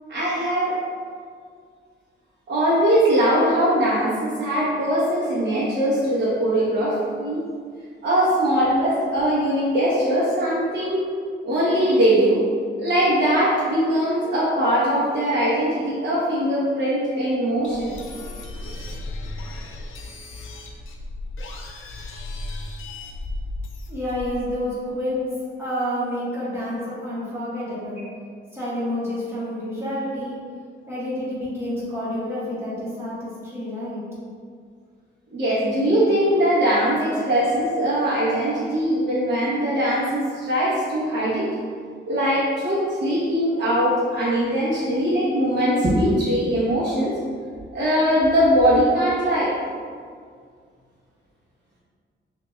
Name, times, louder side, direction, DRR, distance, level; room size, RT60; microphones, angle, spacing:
voice 1, 0.1-0.8 2.5-7.4 8.0-11.1 11.4-12.5 12.8-17.9 35.3-41.5 42.1-47.1 47.7-49.5, equal, 60° right, -10 dB, 1.2 m, -21 dB
sound 1, 17.6-24.4, left 2 dB, 80° left, 0.6 m, -35 dB
voice 2, 23.9-25.2 25.6-28.0 28.5-30.4 30.9-34.0, equal, 10° right, -10 dB, 1.4 m, -29 dB
6.0 x 2.9 x 2.4 m, 2.1 s
wide cardioid pair, 150°, 20 cm